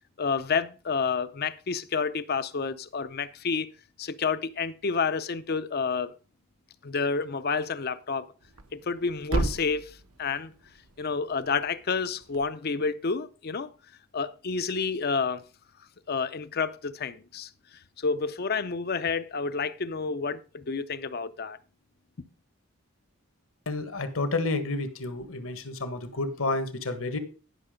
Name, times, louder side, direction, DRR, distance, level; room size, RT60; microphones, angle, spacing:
voice 1, 0.2-3.7 4.0-6.1 6.8-8.3 8.7-10.5 11.0-13.7 14.1-15.4 16.1-17.5 18.0-21.6, left 5 dB, 45° left, 0.5 m, -29 dB
Thump thud, 8.4-12.5, right 2 dB, 85° right, 1.3 m, -35 dB
voice 2, 23.7-27.2, left 2 dB, 70° left, 1.4 m, -30 dB
11.0 x 5.8 x 5.0 m
head